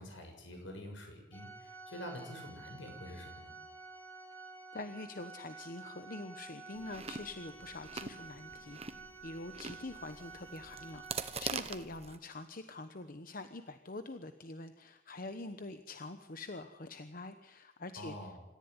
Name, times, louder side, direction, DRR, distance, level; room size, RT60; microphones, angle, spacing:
voice 1, 0.0-3.5 18.0-18.4, equal, 70° left, 4 dB, 6.7 m, -47 dB
Organ, 1.3-11.9, right 4 dB, 10° left, 2.2 m, -51 dB
voice 2, 4.7-8.8 9.2-18.4, left 2 dB, 45° left, 9 dB, 1.0 m, -45 dB
Chewing mastication, 6.7-12.2, right 5 dB, 30° right, 1.2 m, -44 dB
26.5 x 14.5 x 9.6 m, 1.1 s
head